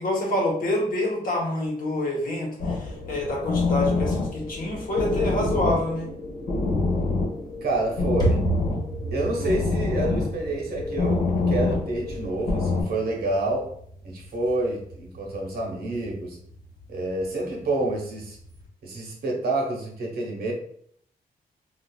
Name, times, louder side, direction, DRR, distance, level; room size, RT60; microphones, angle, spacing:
voice 1, 0.0-6.1 9.4-9.6, left 1 dB, 60° left, -1 dB, 1.0 m, -27 dB
sound 1, 2.6-12.8, left 3 dB, 80° left, 1.2 m, -27 dB
sound 2, 7.3-18.7, right 1 dB, 25° left, 0.6 m, -35 dB
voice 2, 7.6-8.4 9.1-13.7 14.0-16.4 16.9-18.4 18.8-20.5, right 2 dB, 80° right, -1 dB, 0.8 m, -28 dB
3.8 x 2.4 x 2.2 m, 0.65 s
wide cardioid pair, 135°, 16 cm